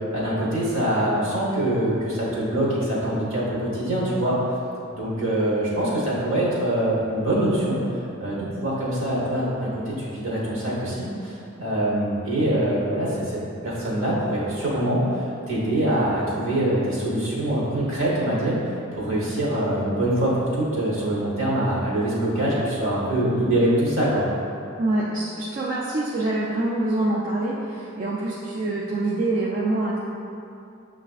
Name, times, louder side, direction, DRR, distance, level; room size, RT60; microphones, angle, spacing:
voice 1, 0.1-4.3 4.9-7.8 8.2-18.6 18.9-24.3, right 1 dB, 60° right, -5 dB, 1.0 m, -24 dB
voice 2, 24.8-30.0, right 2 dB, 35° right, -6 dB, 0.3 m, -25 dB
6.9 x 2.4 x 2.4 m, 2.7 s
head